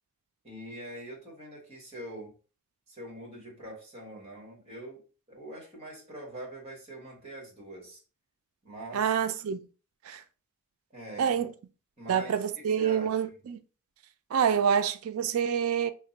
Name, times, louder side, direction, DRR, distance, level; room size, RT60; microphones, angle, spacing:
voice 1, 0.4-2.3 2.9-5.0 5.3-8.0 8.6-9.1 10.9-11.4 12.0-13.2, right 1 dB, 30° right, 1.6 m, -44 dB
voice 2, 8.9-9.6 10.0-10.2 11.2-11.5 12.1-13.6 14.3-15.9, right 8 dB, 75° right, 0.4 m, -27 dB
3.3 x 2.2 x 4.0 m
head